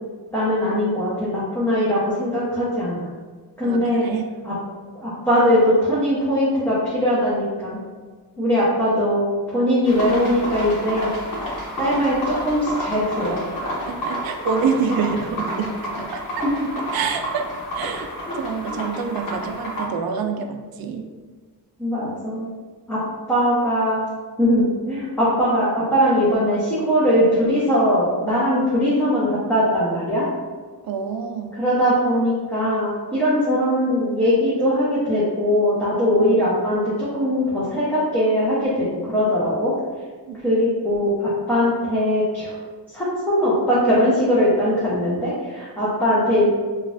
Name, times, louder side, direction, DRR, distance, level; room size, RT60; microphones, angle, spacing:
voice 1, 0.3-3.0 3.6-4.0 4.4-4.5 4.9-7.8 8.4-11.1 11.8-13.7 16.6-16.7 18.7-18.8 21.8-22.5 22.9-23.0 23.3-24.0 24.4-30.2 31.6-39.7 40.4-42.6 42.9-46.5, equal, 5° left, -10 dB, 0.8 m, -20 dB
voice 2, 3.6-4.3 8.4-8.8 13.9-16.5 16.9-17.5 17.7-18.1 18.3-21.1 30.8-31.6 40.3-40.8, right 5 dB, 70° right, 5 dB, 0.5 m, -27 dB
sound 1, 9.8-19.9, equal, 60° left, 1.1 m, -30 dB
5.2 x 2.5 x 2.5 m, 1.5 s
wide cardioid pair, 155°, 37 cm